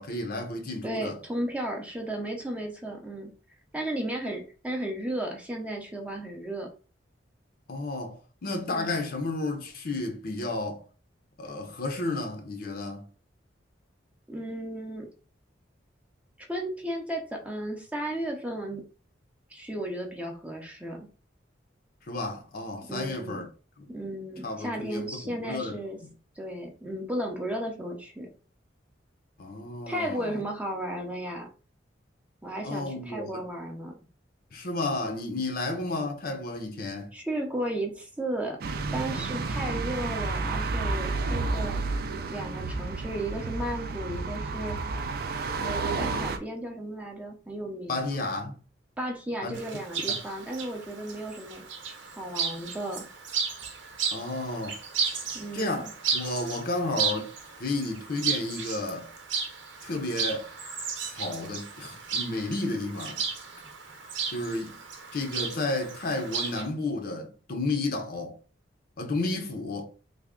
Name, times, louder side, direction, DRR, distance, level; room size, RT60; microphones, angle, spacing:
voice 1, 0.0-1.2 7.7-10.8 11.4-13.1 22.1-23.5 23.8-23.9 24.4-25.8 29.4-30.4 32.6-33.4 34.5-37.1 47.9-48.6 49.4-49.5 54.1-54.8 55.5-57.3 57.6-59.1 59.8-60.5 61.0-63.2 64.3-64.8 65.1-68.4 69.0-69.9, left 2 dB, 50° left, 0.6 m, -32 dB
voice 2, 0.8-3.3 3.7-6.7 8.7-9.0 14.3-15.1 16.5-18.8 19.5-21.1 22.9-23.4 23.9-26.0 26.4-28.3 29.9-31.5 32.4-33.9 37.1-38.6 38.9-41.8 42.3-44.8 45.6-48.0 49.0-51.6 52.2-53.1 55.3-55.8, right 1 dB, 10° right, 0.5 m, -34 dB
sound 1, 38.6-46.4, right 3 dB, 55° right, 0.4 m, -31 dB
Chirp tweet, 49.5-66.6, right 6 dB, 85° right, 0.8 m, -34 dB
3.4 x 2.2 x 3.6 m
head